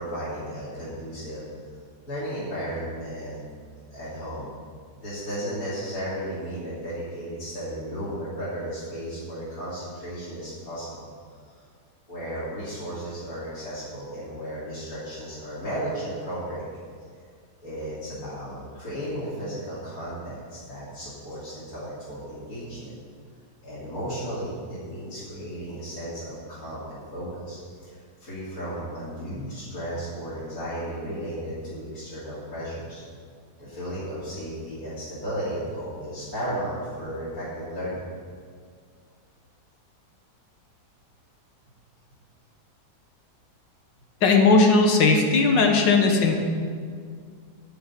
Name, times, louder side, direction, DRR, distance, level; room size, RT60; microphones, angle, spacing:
voice 1, 0.0-1.4 2.1-3.5 3.9-4.6 5.0-11.1 11.5-11.6 12.1-16.8 17.6-23.0 23.6-33.0 33.6-38.0 45.8-46.0, equal, 50° left, -12 dB, 3.5 m, -34 dB
voice 2, 44.2-46.4, left 3 dB, 85° left, 2 dB, 2.1 m, -18 dB
10.5 x 6.8 x 8.5 m, 2.1 s
omnidirectional pair, 1.9 m